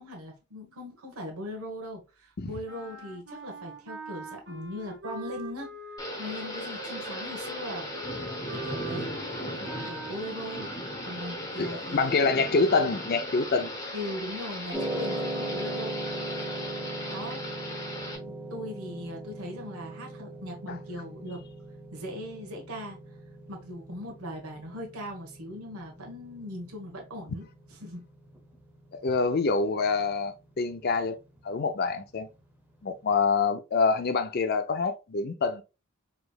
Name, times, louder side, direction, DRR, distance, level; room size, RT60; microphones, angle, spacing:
voice 1, 0.0-7.9 8.5-12.5 13.9-16.0 17.0-17.7 18.0-21.4 21.9-23.2 23.5-27.4 27.7-28.1, left 1 dB, 90° right, 1.2 m, -40 dB
sound 1, 2.7-11.8, right 3 dB, 60° right, 1.2 m, -43 dB
Thunder / Rain, 6.0-18.2, equal, 15° left, 1.0 m, -37 dB
voice 2, 11.6-13.7 20.7-20.8 28.9-31.2 31.4-32.3 32.8-35.6, left 4 dB, 45° left, 0.5 m, -26 dB
sound 2, 14.7-33.0, right 2 dB, 10° right, 0.7 m, -40 dB
4.8 x 3.1 x 2.3 m
head